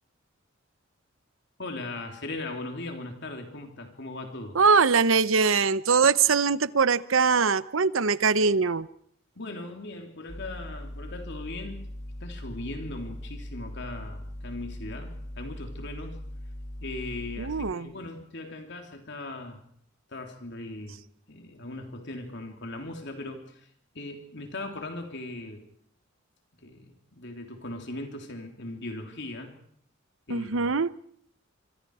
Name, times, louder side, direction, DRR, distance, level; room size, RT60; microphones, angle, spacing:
voice 1, 1.6-4.6 9.4-11.8 12.2-16.2 16.8-19.6 20.1-21.0 21.3-23.7 24.0-25.6 26.6-29.5 30.3-30.7, left 2 dB, 60° left, 4 dB, 3.5 m, -39 dB
voice 2, 4.5-8.9 17.4-17.9 30.3-30.9, right 5 dB, 75° right, 16 dB, 0.9 m, -22 dB
sound 1, 10.3-17.7, left 1 dB, 35° left, 1.5 m, -40 dB
25.5 x 25.5 x 4.9 m, 0.64 s
head